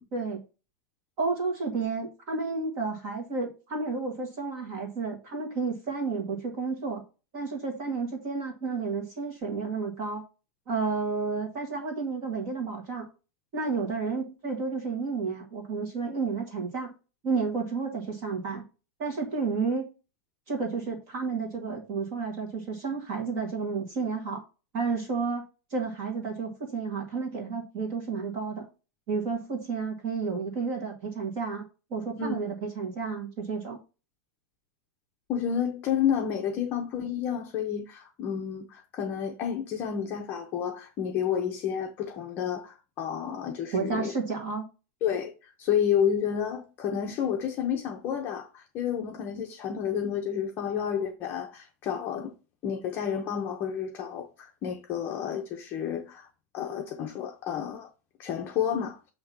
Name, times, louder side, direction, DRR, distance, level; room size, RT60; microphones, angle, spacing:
voice 1, 1.2-7.0 7.3-10.2 10.7-13.1 13.5-16.9 17.2-18.6 19.0-19.9 20.5-24.4 24.7-25.4 25.7-28.7 29.1-31.6 31.9-33.8 43.7-44.6, right 4 dB, 35° right, 1.6 m, -31 dB
voice 2, 35.3-44.1 45.0-52.3 52.6-56.3 56.5-57.9 58.2-59.0, left 8 dB, 25° left, 0.7 m, -30 dB
7.7 x 2.9 x 5.9 m
supercardioid pair, 175°, 8 cm